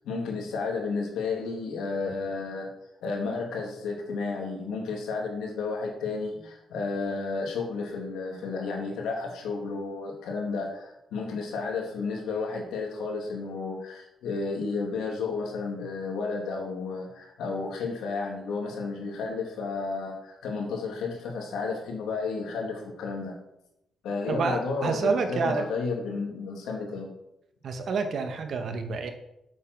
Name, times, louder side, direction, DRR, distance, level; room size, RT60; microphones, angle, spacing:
voice 1, 0.0-2.7 3.0-23.4 24.0-27.1, left 4 dB, 85° left, 0 dB, 2.8 m, -32 dB
voice 2, 24.3-25.6 27.6-29.1, right 4 dB, 60° right, 6 dB, 1.7 m, -28 dB
8.3 x 7.4 x 6.3 m, 0.85 s
cardioid pair, 85°, 0 cm